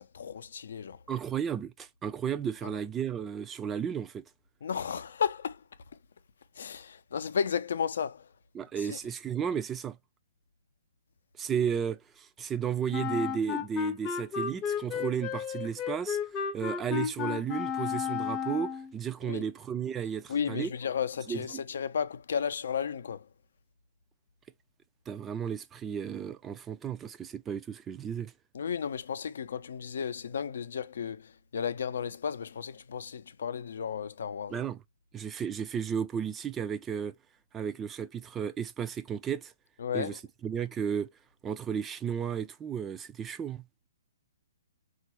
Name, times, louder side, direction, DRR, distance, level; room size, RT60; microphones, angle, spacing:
voice 1, 0.0-1.0 4.6-5.6 6.6-8.3 8.8-9.0 19.2-19.4 20.3-23.3 28.5-34.6 39.8-40.2, left 7 dB, 65° left, 0.5 m, -33 dB
voice 2, 1.1-4.2 8.5-10.0 11.4-16.2 16.5-20.7 21.3-21.4 25.1-28.3 34.5-34.8 35.1-37.1 37.5-39.5 39.9-41.1 41.4-43.6, right 8 dB, 15° right, 0.3 m, -33 dB
Wind instrument woodwind instrument, 12.9-18.9, left 7 dB, 25° left, 0.6 m, -33 dB
3.7 x 2.4 x 2.9 m
hypercardioid pair, 130°, 0 cm